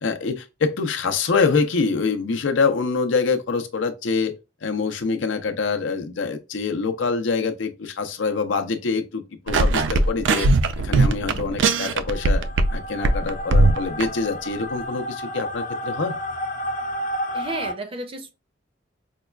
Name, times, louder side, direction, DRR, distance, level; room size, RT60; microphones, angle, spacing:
voice 1, 0.0-4.3 4.6-10.5 10.8-16.2, left 4 dB, 90° left, 0.6 m, -25 dB
sound 1, 9.5-12.8 13.0-14.0, right 2 dB, 80° right, 0.4 m, -19 dB
sound 2, 12.0-17.7, equal, 45° left, 0.4 m, -31 dB
voice 2, 17.3-18.3, right 2 dB, 30° right, 0.5 m, -33 dB
5.2 x 2.3 x 2.2 m
head